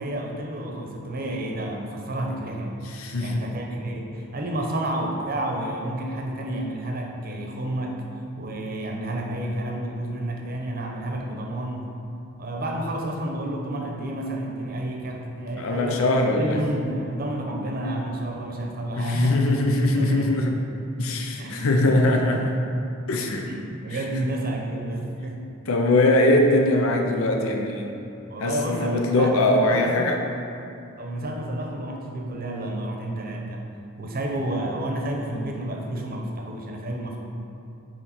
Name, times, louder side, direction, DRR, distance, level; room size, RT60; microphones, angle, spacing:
voice 1, 0.0-2.8 3.2-8.0 8.4-11.9 12.4-16.0 16.3-19.4 19.8-20.3 21.4-22.3 23.5-25.4 28.3-30.1 31.0-33.6 34.0-37.2, right 1 dB, 45° right, 0 dB, 0.8 m, -30 dB
voice 2, 2.8-3.4 15.6-16.6 19.0-20.5 21.0-22.6 23.1-23.5 23.9-24.0 25.7-27.9 28.4-30.2, left 2 dB, 80° left, 2 dB, 0.6 m, -21 dB
8.7 x 3.2 x 4.3 m, 2.6 s
head